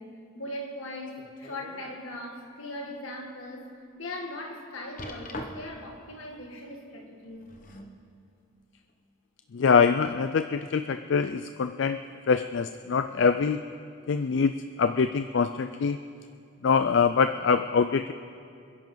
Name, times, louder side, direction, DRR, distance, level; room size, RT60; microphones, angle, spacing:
voice 1, 0.0-3.7 4.0-7.5, left 1 dB, 85° left, 2.1 m, -39 dB
sound 1, 1.1-1.9 2.4-2.5 3.1-3.2 5.0-5.9 7.2-8.0 8.9-9.0, left 1 dB, 40° left, 1.2 m, -41 dB
voice 2, 9.5-12.0 12.3-13.6 14.1-16.0 16.6-18.1, left 5 dB, 65° left, 0.4 m, -24 dB
26.5 x 10.5 x 3.9 m
head